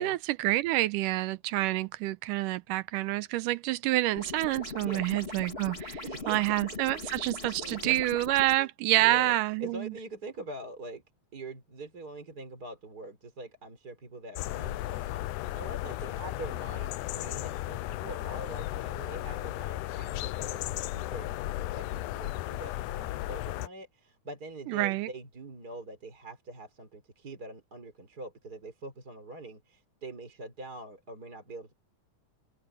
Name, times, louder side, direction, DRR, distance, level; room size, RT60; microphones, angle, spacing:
voice 1, 0.0-9.9 24.7-25.1, right 17 dB, 80° right, 2.1 m, -28 dB
sound 1, 4.2-8.6, left 3 dB, 20° left, 2.2 m, -40 dB
voice 2, 6.0-6.4 7.6-8.0 8.6-8.7 8.9-11.0 11.3-31.7, right 2 dB, 25° right, 4.2 m, -44 dB
sound 2, 14.4-23.7, left 16 dB, 80° left, 1.9 m, -35 dB
open air
omnidirectional pair, 4.0 m